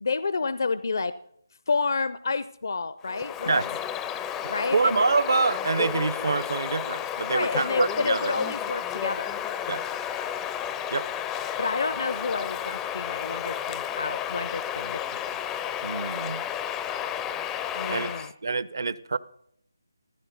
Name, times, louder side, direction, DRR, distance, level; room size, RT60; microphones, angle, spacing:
voice 1, 0.0-1.1 1.7-3.5 4.5-5.1 7.3-9.4 11.6-15.0 17.7-18.3, left 4 dB, 60° left, 0.5 m, -29 dB
Bird vocalization bird call bird song, 3.0-18.3, left 9 dB, 10° left, 0.4 m, -32 dB
voice 2, 3.5-3.8 4.4-8.4 9.7-9.8 10.9-11.1 15.8-16.4 17.9-19.2, right 4 dB, 60° right, 0.6 m, -26 dB
15.0 x 13.5 x 4.0 m
figure-of-eight pair, 155°, 2 cm